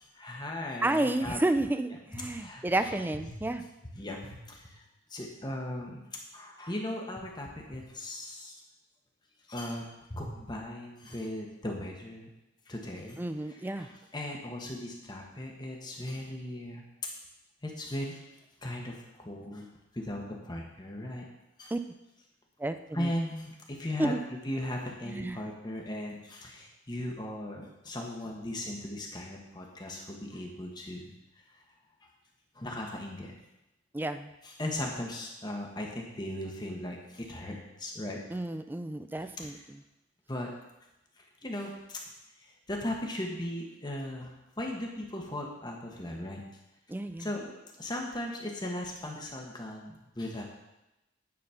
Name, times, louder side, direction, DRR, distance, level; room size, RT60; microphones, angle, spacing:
voice 1, 0.0-1.4 2.3-3.0 3.3-3.5 3.8-4.8 5.1-6.1 6.3-8.5 9.5-12.3 12.7-13.2 13.5-16.8 17.6-18.2 18.6-19.7 19.9-21.3 21.6-21.7 22.9-24.1 24.4-31.1 32.6-33.3 34.4-38.2 39.4-39.5 40.3-40.5 41.4-42.0 42.7-44.3 44.6-46.4 47.2-50.4, left 1 dB, 20° left, 0 dB, 1.2 m, -38 dB
voice 2, 0.8-3.6 13.2-13.9 21.7-21.8 22.6-23.1 24.0-24.2 25.1-25.4 33.9-34.3 38.3-39.8 46.9-47.3, right 2 dB, 10° right, 9 dB, 0.3 m, -31 dB
9.5 x 4.1 x 5.7 m, 0.94 s
head